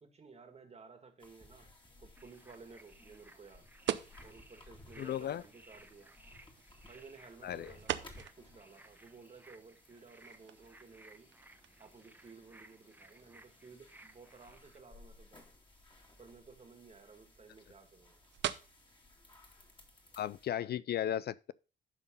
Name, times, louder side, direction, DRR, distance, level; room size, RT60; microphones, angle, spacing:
voice 1, 0.0-1.7 2.0-3.7 4.2-6.1 6.8-11.3 11.8-15.5 16.2-18.2, right 4 dB, 30° right, 1.9 m, -56 dB
sound 1, 1.2-20.5, left 2 dB, 25° left, 2.4 m, -60 dB
sound 2, 2.1-14.8, right 2 dB, 10° right, 0.9 m, -61 dB
sound 3, 3.8-20.8, right 11 dB, 65° right, 0.7 m, -46 dB
voice 2, 5.0-5.4 7.4-7.7 20.2-21.5, left 11 dB, 55° left, 0.4 m, -35 dB
11.5 x 3.9 x 5.3 m
cardioid pair, 90°, 20 cm